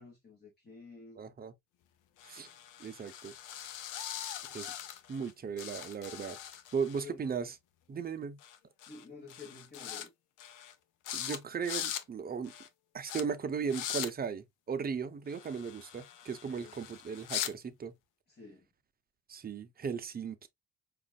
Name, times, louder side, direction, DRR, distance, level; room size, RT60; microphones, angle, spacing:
voice 1, 0.0-1.2 7.0-7.3 8.9-10.1 16.4-16.7 18.3-18.7, left 4 dB, 30° left, 1.5 m, -51 dB
voice 2, 1.2-1.5 2.2-2.5 2.8-3.3 4.5-4.7 5.1-6.4 6.7-7.5 7.9-8.4 11.1-12.5 12.9-17.9 19.3-20.5, right 6 dB, 30° right, 0.6 m, -37 dB
sound 1, 2.2-5.3 5.6-7.0 8.4-8.6 8.8-9.0 9.3-10.1 10.4-10.7 11.0-11.4 11.6-12.0 12.4-12.7 13.1-13.2 13.7-14.1 15.3-17.5, left 10 dB, 90° left, 0.6 m, -41 dB
5.0 x 2.5 x 2.3 m
cardioid pair, 90°, 30 cm